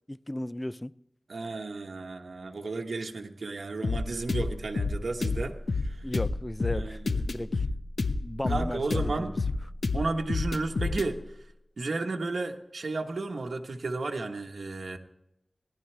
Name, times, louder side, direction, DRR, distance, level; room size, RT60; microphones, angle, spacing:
voice 1, 0.1-0.9 6.0-7.6 8.2-9.4, left 1 dB, 20° left, 0.4 m, -35 dB
voice 2, 1.3-6.1 6.7-7.2 8.5-9.4 9.9-11.4 11.8-15.0, right 3 dB, 75° right, 1.1 m, -33 dB
sound 1, 3.8-11.1, left 3 dB, 70° left, 1.0 m, -29 dB
17.5 x 11.5 x 3.3 m
wide cardioid pair, 55°, 0 cm